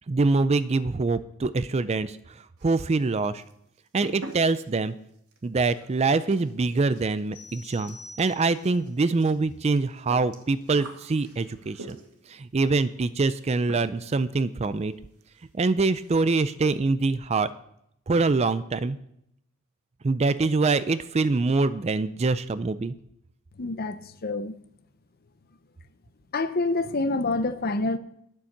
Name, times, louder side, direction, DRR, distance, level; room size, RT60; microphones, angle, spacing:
voice 1, 0.1-3.4 3.9-4.9 5.4-12.0 12.3-14.9 15.5-17.5 18.1-19.0 20.0-22.9, right 3 dB, 30° right, 0.4 m, -24 dB
sound 1, 2.6-3.1 3.4-12.3 13.3-13.4 13.7-14.2 14.4-14.5 14.9-15.0 15.3-15.5 15.8-16.3, right 1 dB, 80° right, 1.9 m, -46 dB
sound 2, 7.3-8.9, left 3 dB, 75° left, 3.7 m, -47 dB
voice 2, 23.6-24.5 26.3-28.0, left 2 dB, 45° left, 0.7 m, -27 dB
10.5 x 7.0 x 7.2 m
head